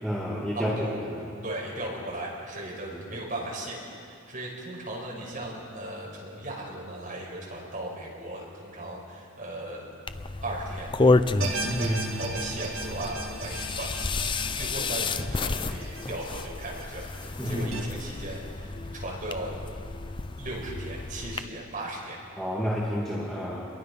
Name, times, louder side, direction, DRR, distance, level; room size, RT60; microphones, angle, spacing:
voice 1, 0.0-0.8 1.1-1.2 2.9-3.0 11.6-12.1 17.4-17.7 22.4-23.7, equal, ahead, -6 dB, 2.2 m, -30 dB
voice 2, 0.6-1.0 1.4-9.9 10.4-10.9 11.5-14.0 14.3-19.6 20.4-22.2, right 1 dB, 40° right, -3 dB, 5.5 m, -37 dB
sound 1, 10.1-21.4, left 3 dB, 25° left, 0.5 m, -30 dB
sound 2, 11.4-17.8, right 2 dB, 80° right, 2.2 m, -37 dB
29.0 x 22.5 x 5.5 m, 2.4 s
head